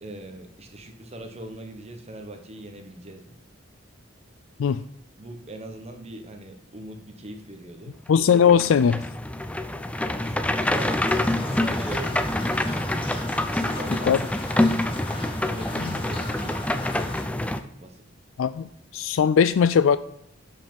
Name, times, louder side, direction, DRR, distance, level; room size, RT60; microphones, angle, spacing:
voice 1, 0.0-3.4 5.2-7.9 10.0-11.1 11.4-12.3 13.5-14.9 15.1-18.0, right 2 dB, 35° right, 5 dB, 1.1 m, -41 dB
voice 2, 8.1-9.0 14.1-14.2 18.4-20.0, left 7 dB, 75° left, 13 dB, 0.3 m, -19 dB
sound 1, 8.3-17.6, left 1 dB, 5° left, 0.5 m, -26 dB
sound 2, 10.7-17.2, left 2 dB, 25° left, 1.4 m, -39 dB
11.5 x 5.5 x 5.3 m, 0.76 s
head